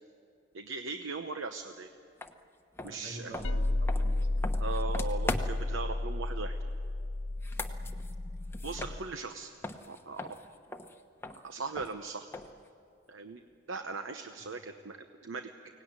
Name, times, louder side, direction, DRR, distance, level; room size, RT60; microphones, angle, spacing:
voice 1, 0.5-1.9 2.8-3.3 4.6-6.6 8.6-9.5 9.9-10.4 11.4-12.3 13.1-13.4 13.7-15.5, right 4 dB, 75° right, 7 dB, 0.9 m, -39 dB
sound 1, 2.2-2.3 2.7-5.8 7.3-9.4 9.6-12.7, left 2 dB, 10° left, 1.0 m, -40 dB
voice 2, 2.8-4.5 7.5-8.0 8.8-9.1 14.4-14.6, right 2 dB, 55° right, 1 dB, 3.1 m, -48 dB
sound 2, 3.4-9.0, left 2 dB, 70° left, 0.8 m, -32 dB
23.5 x 18.0 x 9.6 m, 2.5 s
head